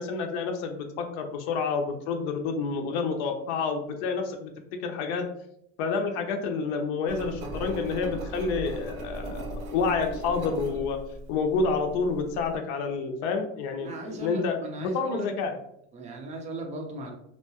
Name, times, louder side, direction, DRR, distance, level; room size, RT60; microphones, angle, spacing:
voice 1, 0.0-4.5 4.8-5.3 5.8-11.0 11.3-15.6, left 4 dB, 70° left, 4 dB, 0.5 m, -29 dB
Engine, 7.1-12.6, right 1 dB, 80° right, 0.7 m, -38 dB
voice 2, 13.8-15.3 15.9-17.1, right 2 dB, 20° right, 2 dB, 0.4 m, -37 dB
2.8 x 2.2 x 2.7 m, 0.74 s
cardioid pair, 155°, 35 cm